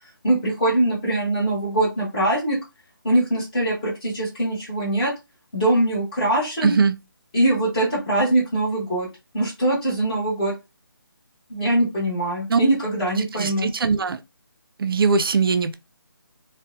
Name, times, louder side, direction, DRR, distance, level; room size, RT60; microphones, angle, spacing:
voice 1, 0.2-2.6 3.0-5.1 5.5-6.7 7.3-9.1 9.3-10.5 11.5-13.7, right 1 dB, 20° left, 0.9 m, -22 dB
voice 2, 6.6-6.9 12.5-12.6 13.4-14.2 14.8-15.7, right 5 dB, 75° right, 0.4 m, -20 dB
2.5 x 2.1 x 2.4 m
figure-of-eight pair, 170°, 12 cm